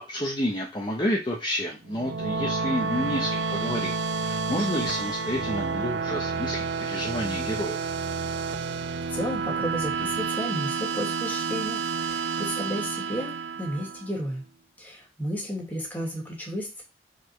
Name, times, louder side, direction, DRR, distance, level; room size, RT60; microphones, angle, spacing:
voice 1, 0.0-3.9 4.2-7.9, equal, 25° left, -2 dB, 1.2 m, -30 dB
sound 1, 1.8-14.2, right 4 dB, 85° right, 0.6 m, -30 dB
voice 2, 9.1-14.5 14.8-16.8, equal, 10° left, -2 dB, 2.6 m, -33 dB
5.1 x 4.4 x 6.1 m, 0.29 s
head